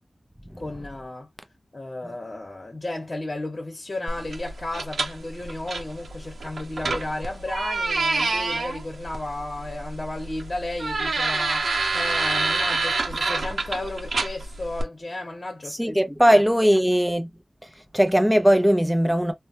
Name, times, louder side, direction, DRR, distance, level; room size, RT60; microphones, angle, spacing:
voice 1, 0.6-1.3 1.7-11.7 11.9-16.0, left 2 dB, 35° left, 1.1 m, -33 dB
sound 1, 4.1-14.8, right 3 dB, 80° right, 0.5 m, -28 dB
voice 2, 15.7-17.3 17.9-19.3, equal, 5° right, 0.5 m, -19 dB
3.2 x 2.2 x 2.7 m
wide cardioid pair, 85°, 0 cm